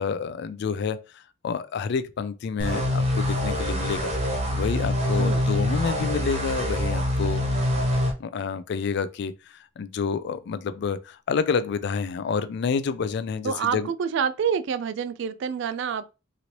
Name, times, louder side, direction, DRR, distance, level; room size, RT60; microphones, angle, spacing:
voice 1, 0.0-7.4 8.2-13.9, left 5 dB, 55° left, 0.3 m, -29 dB
sound 1, 2.6-8.1, left 1 dB, 30° right, 0.7 m, -25 dB
voice 2, 13.4-16.1, right 7 dB, 65° right, 0.3 m, -27 dB
3.0 x 2.6 x 2.9 m
head